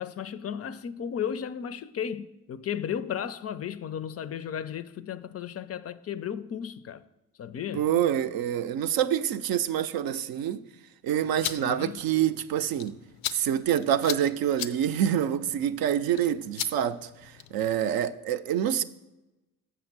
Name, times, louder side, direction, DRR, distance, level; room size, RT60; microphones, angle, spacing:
voice 1, 0.0-7.0 7.4-7.9 11.6-12.0, left 8 dB, 40° left, 0.4 m, -34 dB
voice 2, 7.7-10.6 11.0-13.0 13.3-18.8, right 10 dB, 60° right, 0.6 m, -26 dB
sound 1, 11.2-17.7, left 11 dB, 90° left, 0.5 m, -39 dB
7.3 x 5.6 x 5.9 m
supercardioid pair, 60°, 41 cm